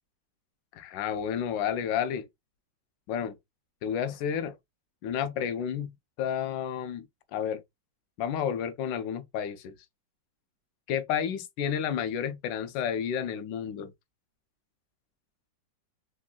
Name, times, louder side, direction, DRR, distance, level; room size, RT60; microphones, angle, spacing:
voice 1, 0.8-2.3 3.1-3.4 3.8-4.5 5.0-7.0 7.3-7.6 8.2-9.7 10.9-13.9, left 8 dB, 85° left, 1.2 m, -31 dB
3.5 x 2.4 x 2.2 m
omnidirectional pair, 1.9 m